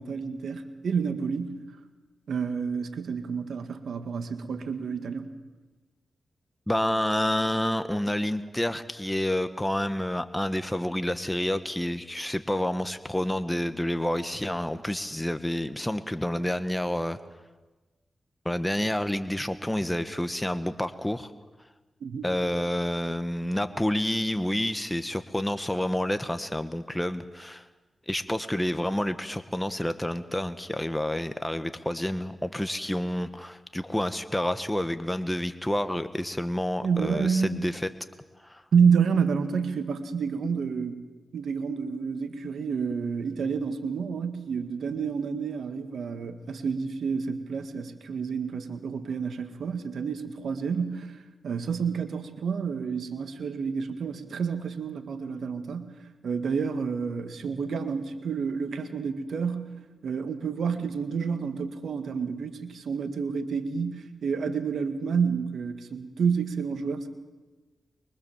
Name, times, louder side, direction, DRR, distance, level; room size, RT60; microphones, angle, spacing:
voice 1, 0.0-1.6 2.3-5.3 22.0-22.3 36.8-37.7 38.7-41.0 41.3-51.2 51.4-55.9 56.2-59.7 60.0-67.1, right 6 dB, 80° right, 8 dB, 1.8 m, -29 dB
voice 2, 6.7-17.2 18.4-21.3 22.2-27.7 28.1-37.8 38.4-38.6, left 1 dB, 10° left, 10 dB, 1.4 m, -29 dB
23.5 x 23.5 x 7.3 m, 1.2 s
cardioid pair, 45°, 0 cm